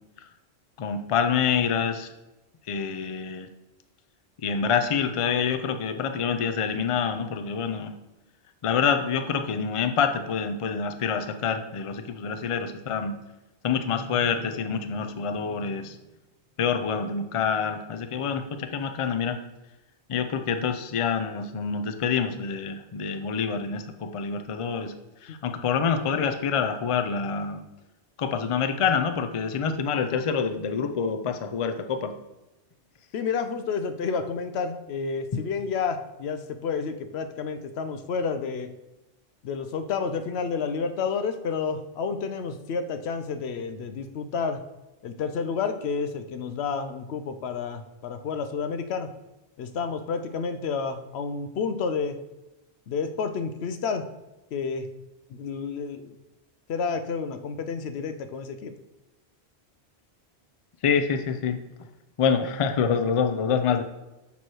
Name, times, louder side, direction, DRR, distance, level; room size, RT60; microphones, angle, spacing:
voice 1, 0.8-2.1 2.7-3.5 4.4-7.9 8.6-13.2 13.6-16.0 16.6-19.4 20.1-24.9 25.2-27.6 28.2-32.1 35.3-35.4 60.8-61.6 62.2-63.8, left 6 dB, 45° left, 8 dB, 0.5 m, -26 dB
voice 2, 33.1-38.7 39.4-44.6 45.0-49.1 49.6-52.2 52.9-54.1 54.5-54.9 55.3-56.1 56.7-58.7, left 5 dB, 85° left, 9 dB, 0.9 m, -30 dB
6.9 x 3.2 x 6.1 m, 1.0 s
omnidirectional pair, 1.1 m